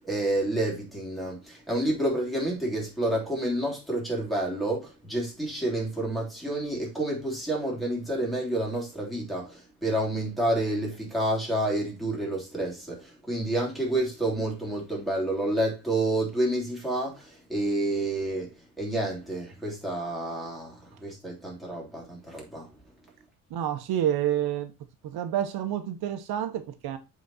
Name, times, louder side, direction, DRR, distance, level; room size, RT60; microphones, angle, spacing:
voice 1, 0.1-18.5 18.8-22.7, right 1 dB, ahead, 3.1 m, -29 dB
voice 2, 23.5-24.7 25.0-27.0, right 11 dB, 80° right, 0.9 m, -28 dB
7.7 x 4.0 x 4.0 m
cardioid pair, 130°, 37 cm